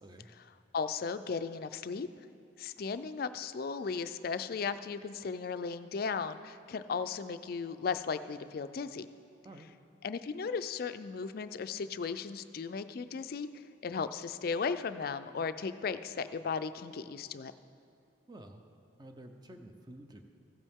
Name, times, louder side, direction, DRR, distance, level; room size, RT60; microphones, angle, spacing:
voice 1, 0.7-2.1 2.6-9.1 10.0-13.5 13.8-17.5, left 5 dB, 50° left, 11 dB, 0.3 m, -36 dB
voice 2, 18.3-18.6 19.0-20.2, right 1 dB, 20° right, 5 dB, 0.6 m, -50 dB
15.5 x 8.2 x 3.6 m, 2.4 s
head